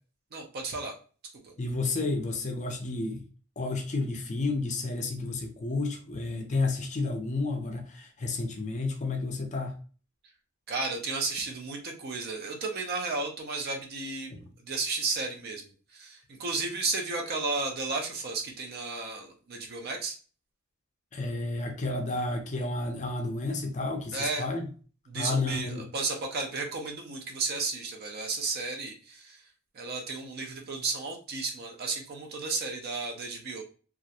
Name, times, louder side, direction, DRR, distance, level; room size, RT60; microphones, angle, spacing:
voice 1, 0.3-0.9 1.4-1.5 10.7-14.3 14.6-20.2 24.1-24.4 25.1-29.4 29.7-33.6, right 3 dB, 45° right, 0.5 m, -33 dB
voice 2, 1.6-3.2 3.6-9.7 14.3-14.5 21.1-24.7 25.1-25.9, left 3 dB, 35° left, 0.5 m, -31 dB
2.4 x 2.1 x 2.6 m
head